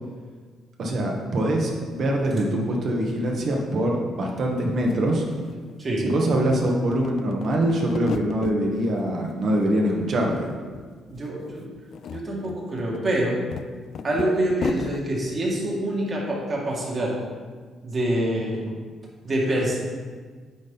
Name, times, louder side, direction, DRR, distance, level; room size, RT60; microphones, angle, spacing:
voice 1, 0.8-5.2 6.1-10.5, right 1 dB, 60° right, 0 dB, 1.4 m, -23 dB
sound 1, 4.6-4.7 4.9-6.0 6.4-8.6 9.0-9.7 10.0-10.9 11.1-11.3 11.8-15.0, left 7 dB, 65° left, 0.3 m, -36 dB
voice 2, 5.8-6.1 11.1-11.7 12.1-13.4 14.0-17.1 17.8-18.6 19.2-19.8, right 1 dB, 40° right, -3 dB, 2.0 m, -25 dB
9.3 x 4.3 x 4.0 m, 1.5 s
cardioid pair, 90°, 0 cm